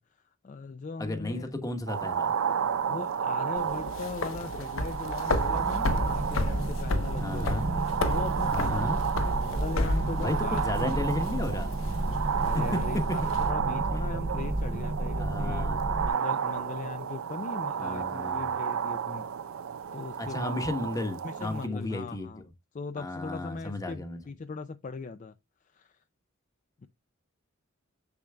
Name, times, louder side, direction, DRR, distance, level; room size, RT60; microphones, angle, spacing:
voice 1, 0.0-1.5 2.9-7.5 8.1-8.9 9.2-11.1 12.4-15.7 16.0-19.3 19.6-20.6 21.2-22.4 22.7-25.3 25.7-26.0 26.8-26.9, left 4 dB, 40° left, 0.4 m, -39 dB
voice 2, 1.0-2.4 7.2-7.7 8.5-9.0 10.1-11.7 12.4-12.5 13.9-14.1 15.2-15.8 17.8-18.5 20.2-22.3 23.0-24.2, left 2 dB, 15° left, 1.0 m, -34 dB
sound 1, 1.9-21.7, right 7 dB, 90° right, 0.5 m, -32 dB
sound 2, 3.6-13.5, left 2 dB, 85° left, 0.8 m, -33 dB
sound 3, 5.4-16.1, right 2 dB, 35° right, 0.5 m, -32 dB
7.0 x 6.5 x 2.2 m
head